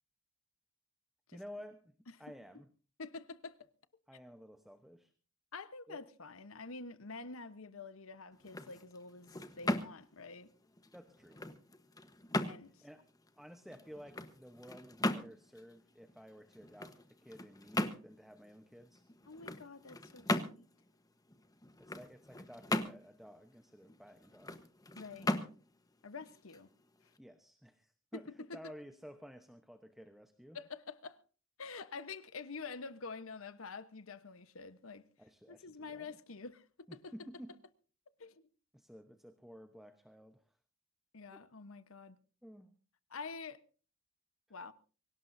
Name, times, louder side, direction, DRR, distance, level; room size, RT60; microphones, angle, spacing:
voice 1, 1.3-1.9 2.2-2.7 4.1-5.1 5.9-6.0 10.9-11.4 12.8-13.1 13.4-19.0 21.8-24.6 27.2-30.6 35.2-36.2 36.9-37.5 38.7-40.6 41.3-41.4 42.4-42.8, equal, ahead, 0.9 m, -53 dB
voice 2, 3.0-3.6 5.5-10.5 12.4-12.8 19.3-20.7 25.0-25.3 26.0-26.7 28.1-28.2 28.5-28.7 30.5-31.2 31.6-35.0 35.5-37.1 38.2-38.5 41.1-42.2 43.1-43.6 44.5-44.7, left 4 dB, 90° left, 1.1 m, -47 dB
sound 1, 8.3-27.2, left 1 dB, 20° left, 1.1 m, -40 dB
24.0 x 17.5 x 2.7 m
head